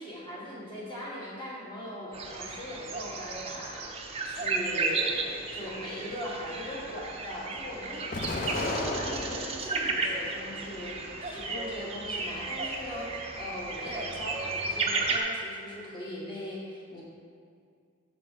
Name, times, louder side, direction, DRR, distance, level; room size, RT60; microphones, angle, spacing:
voice 1, 0.0-3.9 4.2-8.0 8.4-10.9 11.2-17.0, left 1 dB, 25° left, -6 dB, 1.4 m, -39 dB
sound 1, 2.1-15.2, right 3 dB, 30° right, 0.5 m, -34 dB
Explosion, 8.1-9.8 10.3-11.2, left 2 dB, 40° left, 0.5 m, -34 dB
5.7 x 5.4 x 4.9 m, 2.3 s
head